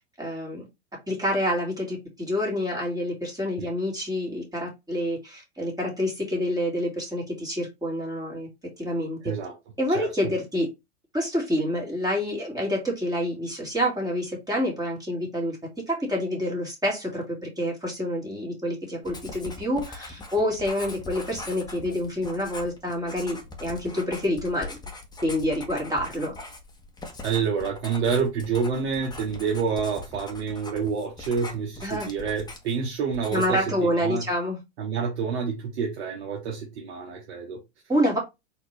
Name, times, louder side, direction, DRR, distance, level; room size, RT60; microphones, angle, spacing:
voice 1, 0.2-0.6 1.1-8.5 8.8-9.2 9.8-10.7 11.1-15.6 15.9-17.2 17.6-24.8 25.2-26.3 31.8-32.1 33.3-34.6 37.9-38.2, equal, 10° right, 2.1 m, -27 dB
Writing, 19.0-32.8 33.1-33.7, left 3 dB, 10° left, 1.1 m, -41 dB
voice 2, 27.2-34.2 34.8-37.6, right 6 dB, 70° right, 1.4 m, -28 dB
4.2 x 3.2 x 3.3 m
hypercardioid pair, 100°, 34 cm